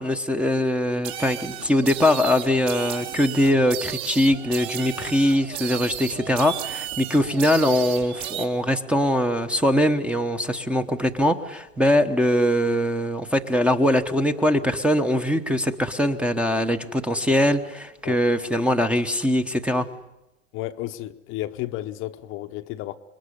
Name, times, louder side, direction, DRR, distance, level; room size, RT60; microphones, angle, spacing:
voice 1, 0.0-19.9, left 1 dB, 5° right, 0.9 m, -22 dB
sound 1, 1.0-8.5, right 12 dB, 55° right, 3.1 m, -34 dB
voice 2, 20.5-22.9, left 15 dB, 30° left, 0.9 m, -32 dB
26.5 x 22.0 x 9.9 m
supercardioid pair, 140°, 38 cm